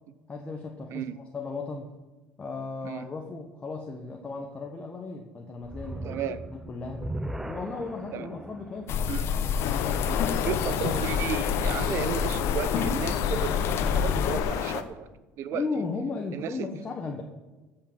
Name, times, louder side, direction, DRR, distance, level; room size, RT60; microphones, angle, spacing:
voice 1, 0.3-1.9 2.4-7.0 7.5-9.0 9.6-11.0 15.5-17.2, left 4 dB, 20° left, 1 dB, 1.3 m, -36 dB
sound 1, 5.6-10.9, right 1 dB, 5° right, 0.6 m, -39 dB
voice 2, 6.0-6.4 8.1-8.3 9.1-9.3 10.4-15.1 15.4-15.7 16.3-16.5, right 8 dB, 50° right, 15 dB, 0.9 m, -33 dB
sound 2, 8.9-14.4, left 6 dB, 45° left, 1.2 m, -28 dB
sound 3, 9.6-14.8, left 10 dB, 70° left, 1.1 m, -31 dB
14.0 x 6.8 x 7.4 m, 1.2 s
cardioid pair, 140°, 6 cm